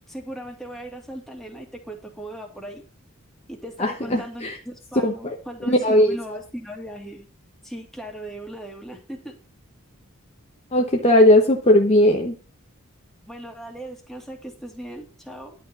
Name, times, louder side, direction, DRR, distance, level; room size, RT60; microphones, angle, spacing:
voice 1, 0.1-2.8 3.5-7.2 7.6-9.3 13.3-15.5, right 1 dB, ahead, 0 dB, 2.2 m, -38 dB
voice 2, 3.8-4.6 5.0-6.4 10.7-12.3, left 1 dB, 30° left, 2 dB, 1.0 m, -18 dB
11.0 x 4.7 x 6.9 m, 0.37 s
head